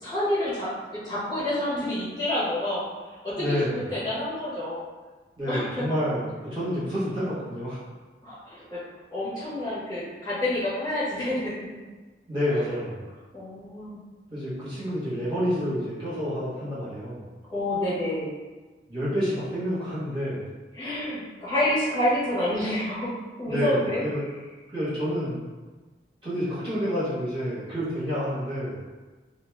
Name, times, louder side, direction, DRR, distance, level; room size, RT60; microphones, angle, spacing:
voice 1, 0.0-2.8 3.2-4.8 5.5-5.9 8.2-8.8 9.1-11.7 12.5-12.7 13.3-14.0 17.5-18.3 20.7-24.0, left 1 dB, 25° left, -10 dB, 1.3 m, -28 dB
voice 2, 3.4-3.8 5.4-7.8 12.3-13.1 14.3-17.2 18.9-20.4 23.5-24.2 24.7-25.5 26.2-28.8, equal, 30° right, -11 dB, 1.2 m, -29 dB
2.9 x 2.7 x 3.5 m, 1.3 s
head